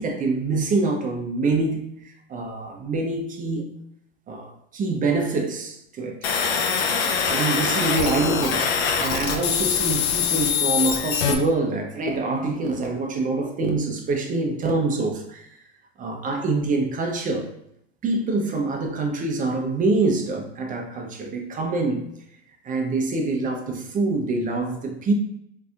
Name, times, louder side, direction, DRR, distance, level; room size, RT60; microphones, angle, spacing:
voice 1, 0.0-3.7 4.3-6.3 7.3-15.5 16.0-17.5 18.0-22.0 22.6-25.1, right 3 dB, 25° right, 2 dB, 0.7 m, -25 dB
sound 1, 6.2-11.3, left 7 dB, 70° left, 0.7 m, -23 dB
3.9 x 2.7 x 2.4 m, 0.77 s
hypercardioid pair, 95°, 32 cm